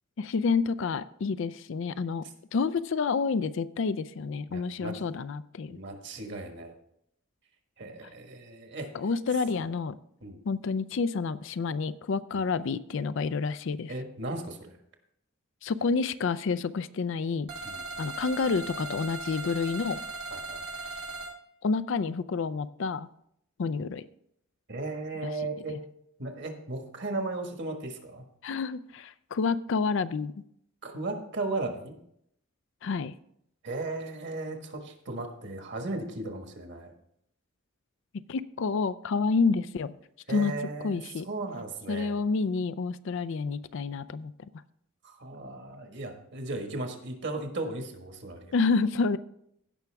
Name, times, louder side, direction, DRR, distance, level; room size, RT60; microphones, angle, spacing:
voice 1, 0.2-2.2 2.5-5.8 8.9-9.9 10.5-13.9 15.6-17.5 18.0-20.0 21.6-23.1 23.6-24.0 25.2-25.3 28.4-30.3 32.8-33.1 38.3-39.9 40.3-40.5 40.8-41.3 41.9-44.5 48.5-49.2, left 4 dB, 60° left, 14 dB, 0.4 m, -29 dB
voice 2, 4.5-4.9 5.7-6.7 7.8-8.9 10.2-10.4 12.3-12.4 13.9-14.8 17.6-17.8 20.3-20.6 24.7-25.8 26.2-28.3 30.8-32.0 33.6-36.9 40.3-42.1 45.0-48.5, right 2 dB, 55° right, 4 dB, 1.6 m, -36 dB
sound 1, 17.5-21.3, right 3 dB, 90° right, 2.0 m, -38 dB
16.0 x 5.9 x 3.5 m, 0.72 s
head